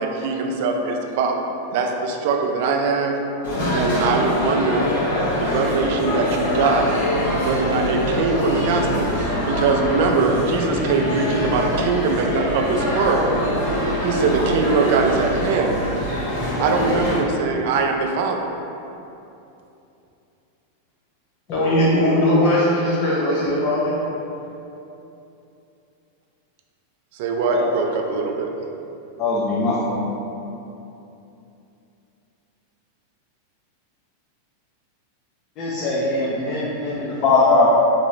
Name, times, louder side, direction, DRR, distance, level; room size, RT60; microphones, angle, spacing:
voice 1, 0.0-3.1 3.7-4.9 5.4-6.8 7.4-13.3 14.0-15.8 16.6-18.5 27.1-28.5, right 4 dB, 60° right, 2 dB, 0.3 m, -22 dB
sound 1, 3.4-17.2, equal, 80° left, 1.2 m, -24 dB
voice 2, 21.5-24.4, left 1 dB, 55° left, -8 dB, 1.1 m, -19 dB
voice 3, 29.2-30.0 35.6-37.7, left 3 dB, 40° left, -7 dB, 0.5 m, -20 dB
2.9 x 2.5 x 3.1 m, 2.8 s
supercardioid pair, 140°, 0 cm